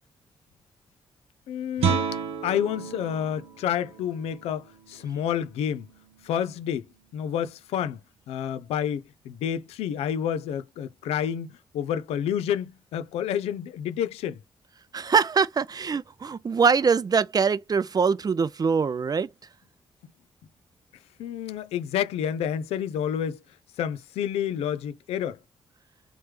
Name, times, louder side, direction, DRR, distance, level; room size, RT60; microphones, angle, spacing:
voice 1, 1.5-2.1 2.4-5.9 6.2-6.9 7.1-8.0 8.3-14.4 21.2-23.4 23.8-25.4, left 9 dB, 90° left, 0.4 m, -29 dB
Guitar, 1.8-7.3, right 6 dB, 85° right, 0.8 m, -33 dB
voice 2, 14.9-19.3, right 5 dB, 40° right, 0.5 m, -23 dB
3.2 x 3.1 x 3.3 m
supercardioid pair, 55°, 10 cm